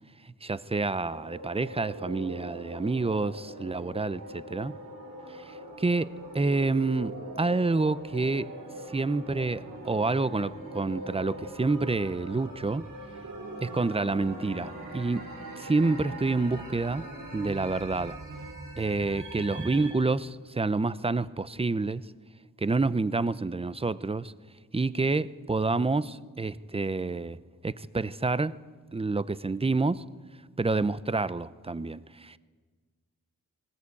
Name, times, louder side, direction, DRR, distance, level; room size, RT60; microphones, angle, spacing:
voice 1, 0.4-4.7 5.8-6.1 6.3-7.1 7.4-8.5 8.9-12.8 13.6-15.2 15.6-17.0 17.3-18.2 18.8-22.0 22.6-24.3 24.7-27.4 27.6-28.5 28.9-30.0 30.6-32.4, right 3 dB, 15° right, 0.6 m, -28 dB
sound 1, 1.0-19.9, right 1 dB, 80° right, 6.5 m, -42 dB
19.0 x 19.0 x 8.4 m
wide cardioid pair, 105°, 33 cm